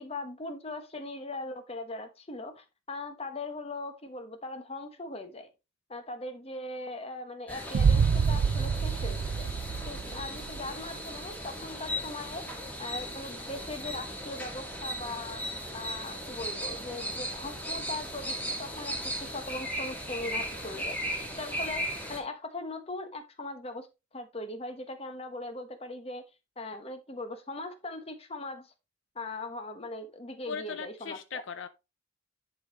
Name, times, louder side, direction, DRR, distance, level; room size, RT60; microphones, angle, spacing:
voice 1, 0.0-5.5 5.9-9.5 9.9-12.5 12.8-21.0 21.4-23.9 24.1-26.2 26.6-28.7 29.1-31.4, left 2 dB, 30° left, 1.1 m, -40 dB
sound 1, 7.5-22.2, equal, 10° left, 1.9 m, -37 dB
Boom, 7.7-10.7, right 6 dB, 75° right, 0.4 m, -26 dB
voice 2, 30.5-31.7, left 6 dB, 65° left, 0.6 m, -38 dB
10.5 x 5.2 x 3.1 m
head